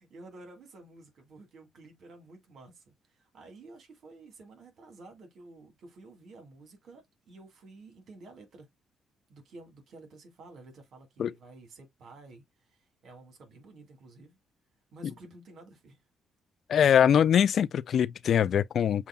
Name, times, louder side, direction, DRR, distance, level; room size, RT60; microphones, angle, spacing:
voice 1, 0.0-8.7 9.3-14.4 14.9-16.0, right 2 dB, 65° right, 2.0 m, -51 dB
voice 2, 16.7-19.1, left 9 dB, 60° left, 0.3 m, -23 dB
7.0 x 2.5 x 2.3 m
cardioid pair, 90°, 0 cm